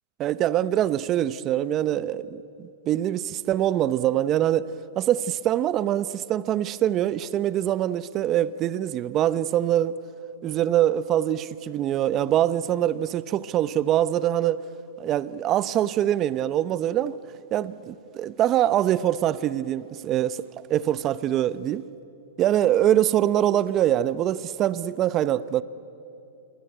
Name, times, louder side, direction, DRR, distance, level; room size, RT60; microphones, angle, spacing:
voice 1, 0.2-4.7 5.0-10.0 10.4-14.6 15.0-17.2 17.5-21.9 22.4-25.6, right 12 dB, 30° right, 0.8 m, -24 dB
27.5 x 23.0 x 9.1 m
hypercardioid pair, 140°, 0 cm